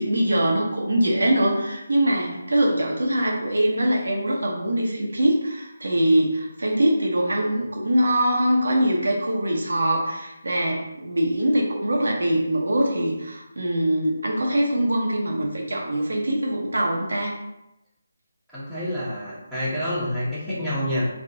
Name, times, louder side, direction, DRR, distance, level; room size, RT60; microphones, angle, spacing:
voice 1, 0.0-17.3, right 1 dB, 65° right, -1 dB, 1.1 m, -23 dB
voice 2, 18.5-21.0, equal, ahead, -18 dB, 1.3 m, -27 dB
3.5 x 3.2 x 4.0 m, 0.90 s
figure-of-eight pair, 150°, 0 cm